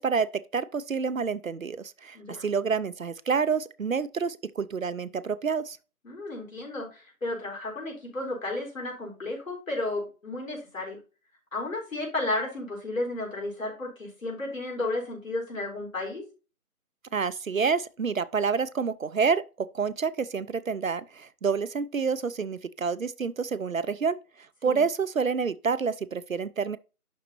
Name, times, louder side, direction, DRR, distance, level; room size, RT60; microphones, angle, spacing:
voice 1, 0.0-5.8 17.1-24.2 24.6-26.8, right 5 dB, 65° right, 0.5 m, -28 dB
voice 2, 6.0-11.0 11.5-16.2 24.6-24.8, left 2 dB, 60° left, 4.4 m, -33 dB
11.5 x 4.1 x 3.0 m
figure-of-eight pair, 165°, 45 cm